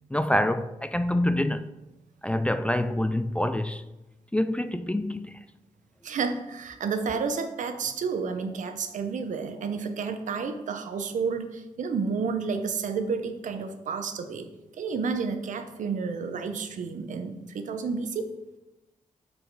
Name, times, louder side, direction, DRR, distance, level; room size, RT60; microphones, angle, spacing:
voice 1, 0.1-1.6 2.2-3.8 4.3-5.4, left 1 dB, 10° left, 0.3 m, -26 dB
voice 2, 6.0-14.5 14.8-18.3, right 5 dB, 75° right, 0.8 m, -30 dB
6.2 x 4.9 x 4.7 m
cardioid pair, 85°, 13 cm